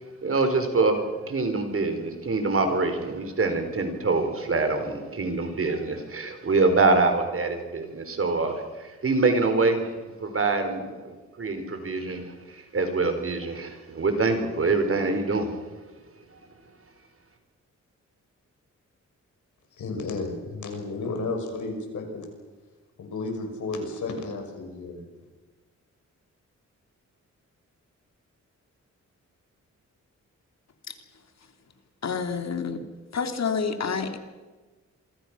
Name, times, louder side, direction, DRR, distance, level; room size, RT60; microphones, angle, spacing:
voice 1, 0.2-9.9 10.2-15.5 16.3-16.4, right 3 dB, 50° right, 7 dB, 4.5 m, -25 dB
voice 2, 19.8-22.3 23.0-25.0, left 3 dB, 90° left, 4 dB, 6.2 m, -32 dB
voice 3, 32.0-32.8 33.1-34.2, left 5 dB, 60° left, 6 dB, 2.9 m, -28 dB
27.5 x 24.0 x 6.2 m, 1.3 s
wide cardioid pair, 105°, 29 cm